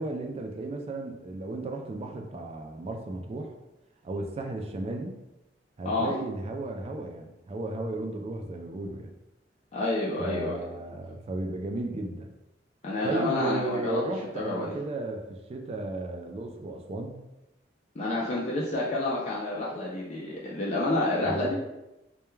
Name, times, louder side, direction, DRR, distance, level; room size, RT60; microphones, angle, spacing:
voice 1, 0.0-3.5 4.0-5.1 5.8-9.1 10.2-12.3 13.0-15.2 15.5-17.2 21.2-21.5, right 2 dB, 35° right, 3 dB, 0.3 m, -34 dB
voice 2, 9.7-10.5 12.8-14.0 14.3-14.7 18.0-21.5, left 2 dB, 35° left, -5 dB, 0.4 m, -29 dB
2.2 x 2.2 x 3.0 m, 0.95 s
head